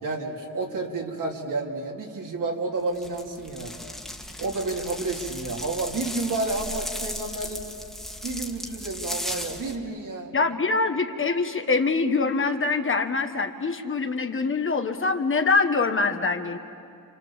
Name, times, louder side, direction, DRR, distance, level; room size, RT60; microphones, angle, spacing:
voice 1, 0.0-3.7 4.4-7.6 8.2-10.3, right 3 dB, 65° right, 0 dB, 3.3 m, -30 dB
sound 1, 2.9-9.8, left 1 dB, ahead, 1.8 m, -36 dB
voice 2, 10.3-16.6, left 4 dB, 35° left, 6 dB, 1.4 m, -24 dB
29.0 x 28.0 x 7.3 m, 2.5 s
wide cardioid pair, 140°, 33 cm